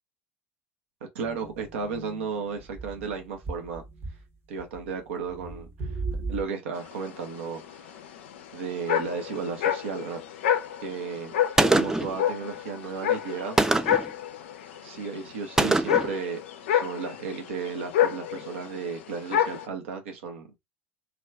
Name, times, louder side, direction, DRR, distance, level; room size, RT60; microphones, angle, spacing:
voice 1, 1.1-3.8 4.5-6.0 6.3-8.0 8.5-10.2 10.8-11.3 11.7-13.6 14.8-16.4 16.7-20.5, right 5 dB, 70° right, 0.5 m, -34 dB
sound 1, 1.2-2.3 2.6-4.2 4.6-4.9 5.2-6.5, right 3 dB, 35° right, 0.8 m, -37 dB
sound 2, 6.8-19.7, left 10 dB, 70° left, 0.4 m, -29 dB
Gunshot gunfire, 11.6-12.2 13.6-14.1 15.6-16.1, right 2 dB, 5° right, 0.3 m, -23 dB
2.3 x 2.2 x 3.2 m
figure-of-eight pair, 65°, 7 cm